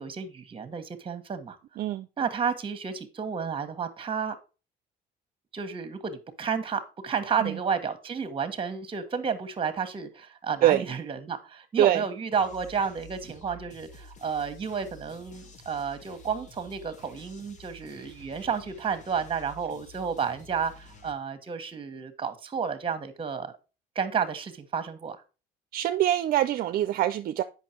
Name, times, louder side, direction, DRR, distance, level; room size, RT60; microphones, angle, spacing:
voice 1, 0.0-1.6 2.2-4.4 5.5-23.5 23.9-25.2, right 6 dB, 30° right, 1.4 m, -31 dB
sound 1, 12.3-21.1, left 2 dB, 45° left, 1.7 m, -50 dB
voice 2, 25.7-27.4, right 12 dB, 60° right, 0.5 m, -24 dB
8.3 x 5.8 x 4.5 m
cardioid pair, 110°, 17 cm